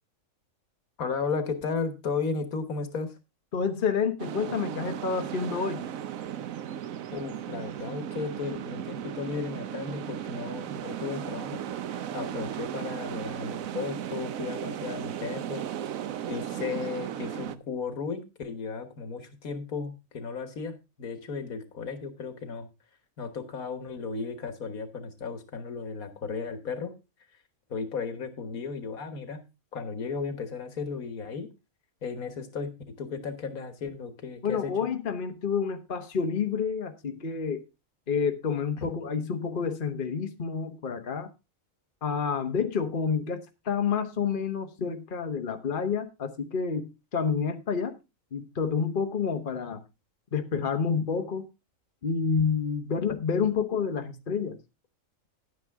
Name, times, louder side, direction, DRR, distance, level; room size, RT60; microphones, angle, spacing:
voice 1, 1.0-3.2 7.1-11.6 12.1-15.7 16.3-22.7 23.2-26.9 27.7-29.4 29.7-31.5 32.0-34.7 38.8-38.9, left 5 dB, 85° left, 1.9 m, -35 dB
voice 2, 3.5-5.8 34.4-37.6 38.1-41.3 42.0-47.9 48.3-49.8 50.3-51.5 52.0-54.6, left 6 dB, 40° left, 1.2 m, -29 dB
sound 1, 4.2-17.6, right 10 dB, 75° right, 1.1 m, -36 dB
11.0 x 9.3 x 3.5 m
omnidirectional pair, 1.5 m